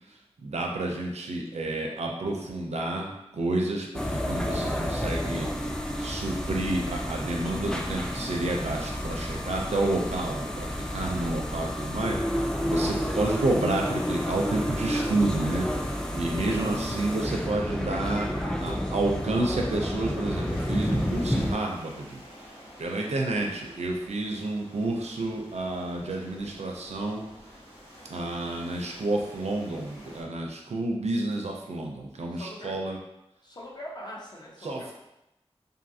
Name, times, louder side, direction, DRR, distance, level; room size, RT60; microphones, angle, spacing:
voice 1, 0.4-5.5 6.0-15.7 16.1-22.2 22.8-27.2 28.1-33.0 34.6-34.9, right 2 dB, 85° right, 1 dB, 0.4 m, -30 dB
sound 1, 3.9-21.5, equal, 5° left, 0.3 m, -30 dB
sound 2, 12.3-30.2, equal, 80° left, 1.2 m, -49 dB
voice 2, 16.3-16.8 32.3-32.9 33.4-34.9, left 1 dB, 40° left, -3 dB, 0.7 m, -41 dB
2.6 x 2.5 x 2.6 m, 0.90 s
wide cardioid pair, 45°, 11 cm